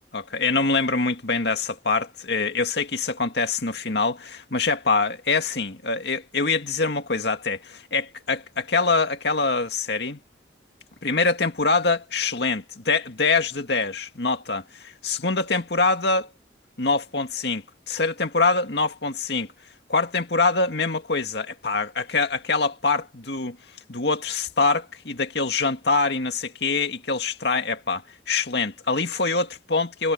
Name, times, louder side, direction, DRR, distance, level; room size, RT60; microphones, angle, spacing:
voice 1, 0.1-10.2 11.0-16.3 16.8-19.5 19.9-23.6 23.9-30.1, left 4 dB, 65° left, 2.1 m, -24 dB
head